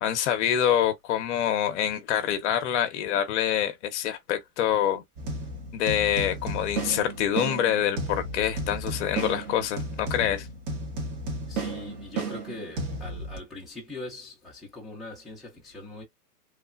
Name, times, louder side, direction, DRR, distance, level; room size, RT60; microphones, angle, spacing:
voice 1, 0.0-5.0 5.7-10.5, left 10 dB, 45° left, 0.7 m, -26 dB
sound 1, 5.2-13.4, right 2 dB, 40° right, 1.2 m, -34 dB
voice 2, 11.5-16.0, left 2 dB, ahead, 0.5 m, -41 dB
3.2 x 2.1 x 2.4 m
hypercardioid pair, 140°, 47 cm